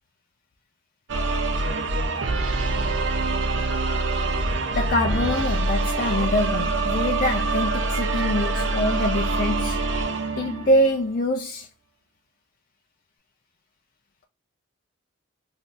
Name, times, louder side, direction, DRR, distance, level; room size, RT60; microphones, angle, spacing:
sound 1, 1.1-11.1, right 3 dB, 60° right, 0.5 m, -25 dB
voice 1, 4.7-9.8 10.4-11.7, left 1 dB, 40° left, 0.4 m, -24 dB
3.7 x 2.7 x 2.4 m
head